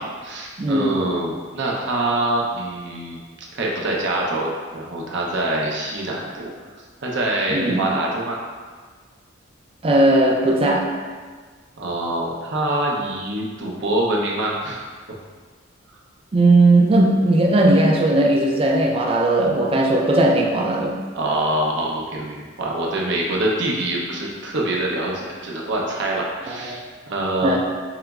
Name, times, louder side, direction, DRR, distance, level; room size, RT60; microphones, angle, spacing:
voice 1, 0.0-3.2 3.5-6.5 7.0-8.4 11.8-14.8 21.1-26.8 27.1-27.6, right 1 dB, 65° right, -2 dB, 0.7 m, -25 dB
voice 2, 0.6-1.0 7.5-7.8 9.8-10.9 16.3-21.0 26.5-26.8 27.4-27.6, right 2 dB, 30° right, 0 dB, 0.4 m, -17 dB
4.8 x 3.0 x 2.3 m, 1.5 s
head